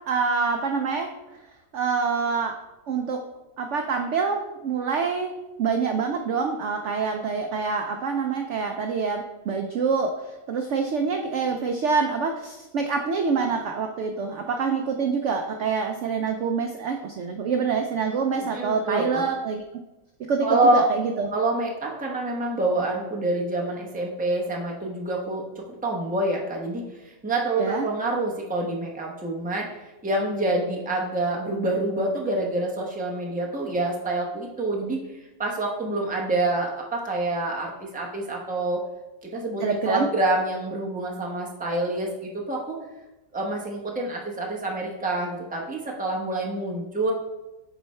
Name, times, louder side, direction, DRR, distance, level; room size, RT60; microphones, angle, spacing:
voice 1, 0.1-1.1 1.7-2.6 2.9-3.2 3.6-19.6 20.3-21.3 27.6-27.8 39.6-40.1, right 5 dB, 70° right, 4 dB, 0.7 m, -26 dB
voice 2, 18.4-19.2 20.4-20.8 21.3-29.7 30.0-35.0 35.4-38.8 39.3-42.8 43.3-47.1, right 2 dB, 10° right, -1 dB, 0.6 m, -27 dB
8.0 x 4.2 x 3.2 m, 1.0 s
omnidirectional pair, 1.8 m